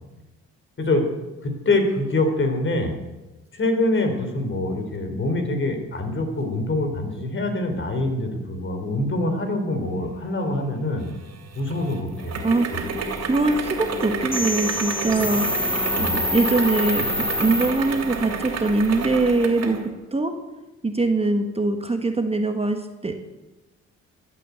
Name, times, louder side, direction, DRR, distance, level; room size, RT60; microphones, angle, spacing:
voice 1, 1.4-2.9 3.5-11.1 11.6-12.4 16.0-16.2, left 2 dB, 40° left, 6 dB, 3.5 m, -24 dB
sound 1, 11.0-19.9, right 4 dB, 55° right, 2.8 m, -31 dB
voice 2, 12.4-12.9 13.2-19.8 20.1-20.3 20.8-23.2, right 3 dB, 20° right, 5 dB, 1.4 m, -23 dB
sound 2, 14.3-18.2, left 1 dB, 20° left, 3.5 m, -26 dB
14.0 x 8.6 x 8.1 m, 1.1 s
cardioid pair, 90°, 30 cm